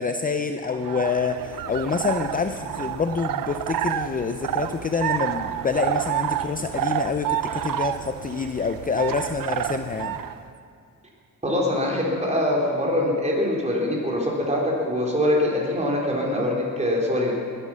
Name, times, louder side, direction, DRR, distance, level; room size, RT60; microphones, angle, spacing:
voice 1, 0.0-10.2, left 5 dB, 25° left, 7 dB, 0.6 m, -27 dB
sound 1, 0.6-10.4, right 11 dB, 80° right, 0.7 m, -29 dB
voice 2, 11.4-17.3, left 1 dB, 20° right, -3 dB, 3.8 m, -23 dB
20.0 x 10.0 x 6.3 m, 2.3 s
cardioid pair, 110°, 33 cm